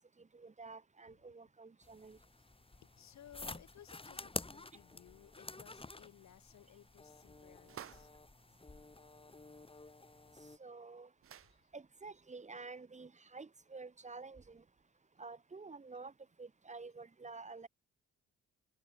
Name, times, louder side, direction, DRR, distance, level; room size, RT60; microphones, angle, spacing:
voice 1, 0.2-2.2 10.6-11.1 11.7-14.6 15.2-16.1 16.4-17.7, right 4 dB, 25° right, 1.3 m, -50 dB
sound 1, 1.8-10.6, left 3 dB, 20° left, 5.1 m, -49 dB
voice 2, 3.0-8.1, left 11 dB, 65° left, 2.1 m, -59 dB
sound 2, 7.6-8.2 10.1-10.2 10.4-10.5 11.2-11.6, right 9 dB, 45° right, 0.9 m, -52 dB
open air
cardioid pair, 90°, 30 cm